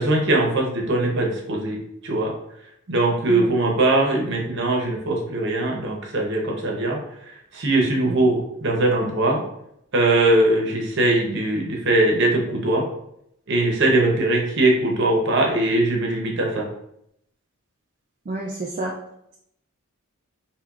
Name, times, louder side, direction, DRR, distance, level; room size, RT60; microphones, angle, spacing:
voice 1, 0.0-2.3 2.9-7.0 7.5-9.4 9.9-12.8 13.5-16.7, right 2 dB, 55° right, 0 dB, 0.8 m, -21 dB
voice 2, 18.3-18.9, right 2 dB, 35° right, -1 dB, 0.4 m, -29 dB
4.6 x 3.0 x 2.4 m, 0.77 s
head